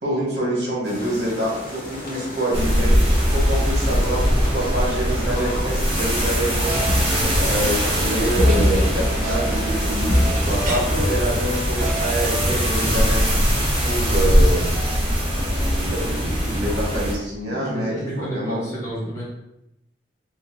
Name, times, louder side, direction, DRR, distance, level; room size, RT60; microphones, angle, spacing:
voice 1, 0.0-3.0 3.3-6.8 7.4-13.3 13.8-15.0 15.7-18.1 18.3-18.6, right 1 dB, 60° right, -4 dB, 1.5 m, -26 dB
sound 1, 0.8-11.0, left 1 dB, 50° left, 0.8 m, -35 dB
sound 2, 2.5-17.1, equal, 30° right, 1.5 m, -21 dB
sound 3, 6.4-12.4, equal, 45° right, 0.8 m, -25 dB
voice 2, 17.5-19.2, equal, 15° left, -7 dB, 0.8 m, -30 dB
3.9 x 2.2 x 3.4 m, 0.86 s
head